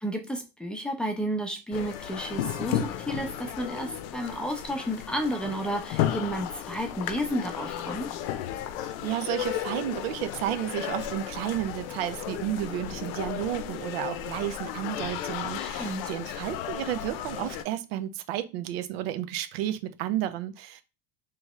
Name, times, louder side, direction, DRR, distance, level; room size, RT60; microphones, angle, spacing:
voice 1, 0.0-8.1 15.6-16.0, equal, 5° left, 0.6 m, -32 dB
sound 1, 1.7-17.6, left 11 dB, 75° left, 0.6 m, -34 dB
voice 2, 8.8-20.8, right 12 dB, 80° right, 0.6 m, -32 dB
3.5 x 3.0 x 3.1 m
supercardioid pair, 130°, 30 cm